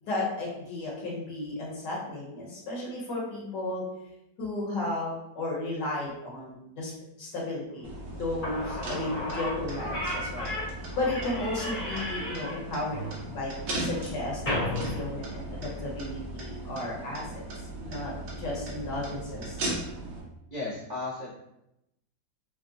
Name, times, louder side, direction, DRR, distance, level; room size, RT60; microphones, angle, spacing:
voice 1, 0.0-3.8 4.4-6.9 7.2-10.5 11.0-17.4 17.8-18.1 18.4-19.6, left 2 dB, 65° left, -5 dB, 1.7 m, -34 dB
sound 1, 7.8-20.2, right 2 dB, 75° right, 1.6 m, -38 dB
Slam / Squeak, 8.1-8.2 8.4-15.9, left 1 dB, 35° left, 1.0 m, -35 dB
voice 2, 20.5-21.3, left 3 dB, 55° right, -7 dB, 0.5 m, -34 dB
5.8 x 2.1 x 2.6 m, 0.85 s
omnidirectional pair, 2.0 m